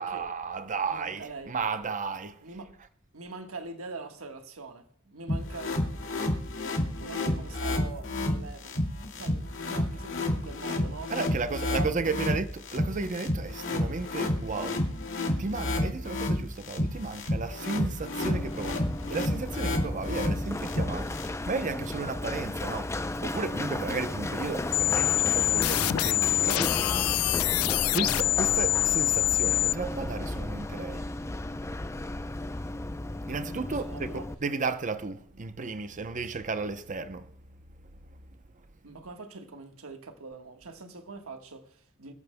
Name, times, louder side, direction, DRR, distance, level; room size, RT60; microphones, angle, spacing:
voice 1, 0.0-2.4 11.1-14.8 15.4-27.0 27.9-31.1 33.3-34.1 34.4-37.3, right 4 dB, 35° right, 0.7 m, -34 dB
voice 2, 0.9-1.5 2.4-2.7 3.1-5.8 6.9-8.8 9.2-12.4 33.6-34.3 36.2-36.3 38.8-42.1, right 3 dB, 90° right, 1.4 m, -43 dB
sound 1, 5.3-21.3, left 1 dB, 65° left, 2.4 m, -30 dB
Run, 18.2-34.3, left 2 dB, 15° left, 0.5 m, -34 dB
sound 2, 24.7-29.7, left 17 dB, 85° left, 0.3 m, -25 dB
26.5 x 8.9 x 2.2 m
head